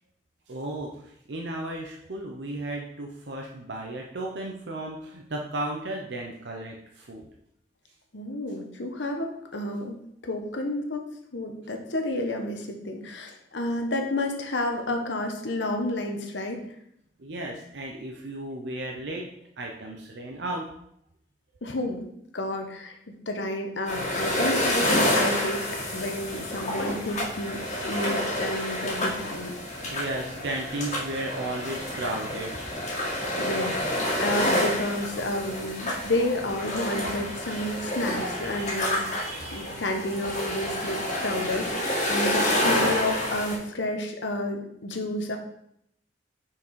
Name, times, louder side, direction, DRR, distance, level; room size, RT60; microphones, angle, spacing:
voice 1, 0.5-0.9 1.3-7.2 17.2-19.3 19.6-20.7 29.8-33.4 37.5-37.6 38.5-38.6 38.9-39.8, right 1 dB, 70° right, 0 dB, 0.8 m, -35 dB
voice 2, 8.1-10.0 10.2-11.1 11.3-16.6 21.6-22.1 22.3-25.6 25.9-29.6 33.4-45.4, left 1 dB, 80° left, 4 dB, 1.0 m, -31 dB
sound 1, 23.9-43.6, left 1 dB, 40° left, 1.8 m, -28 dB
5.9 x 4.6 x 4.6 m, 0.76 s
head